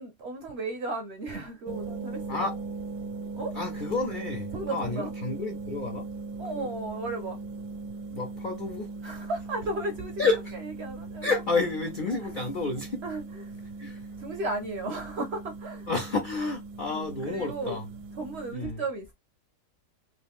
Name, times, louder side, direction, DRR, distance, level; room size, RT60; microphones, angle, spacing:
voice 1, 0.0-2.4 3.3-3.5 4.5-5.1 6.4-7.4 9.0-10.2 10.8-11.3 12.1-12.2 13.0-13.6 14.2-15.9 16.9-17.8 18.2-19.1, right 2 dB, 60° right, 0.7 m, -35 dB
sound 1, 1.7-18.6, right 3 dB, 85° right, 1.1 m, -39 dB
voice 2, 3.5-6.1 6.5-6.7 8.1-9.2 10.2-10.5 11.2-13.0 13.8-14.1 15.9-17.9 18.5-18.8, left 3 dB, 65° left, 0.4 m, -30 dB
3.0 x 2.5 x 3.4 m
omnidirectional pair, 1.6 m